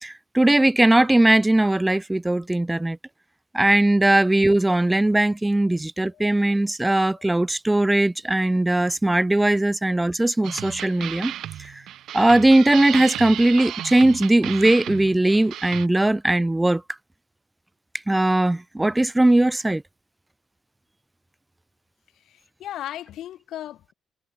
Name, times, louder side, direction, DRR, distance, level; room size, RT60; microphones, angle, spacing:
voice 1, 0.0-3.0 3.5-11.3 11.6-11.7 12.1-16.8 18.1-19.8, right 1 dB, 10° right, 0.8 m, -19 dB
sound 1, 10.4-15.9, right 12 dB, 80° right, 1.5 m, -34 dB
voice 2, 22.3-23.9, left 12 dB, 80° left, 4.3 m, -37 dB
cardioid pair, 90°, 0 cm